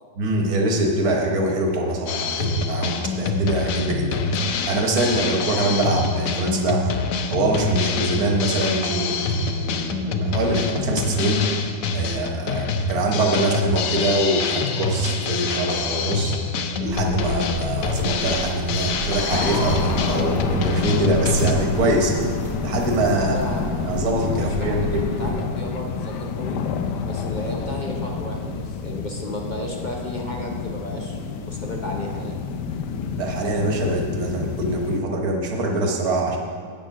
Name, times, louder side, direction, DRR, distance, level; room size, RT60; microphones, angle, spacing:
voice 1, 0.2-4.2 4.7-6.9 7.3-11.5 11.9-16.4 16.8-22.2 22.6-23.4 23.8-25.1 33.2-36.4, right 1 dB, 65° right, 2 dB, 1.6 m, -23 dB
Drum kit, 2.1-21.5, left 4 dB, 65° left, 0.9 m, -26 dB
sound 1, 16.9-25.3, right 1 dB, 45° right, 1.6 m, -33 dB
sound 2, 19.3-35.0, left 6 dB, 85° left, 1.2 m, -29 dB
voice 2, 23.2-23.7 24.3-24.8 25.0-26.6 27.0-32.3, equal, 35° left, 0 dB, 0.9 m, -33 dB
8.6 x 6.9 x 5.9 m, 2.1 s
omnidirectional pair, 1.8 m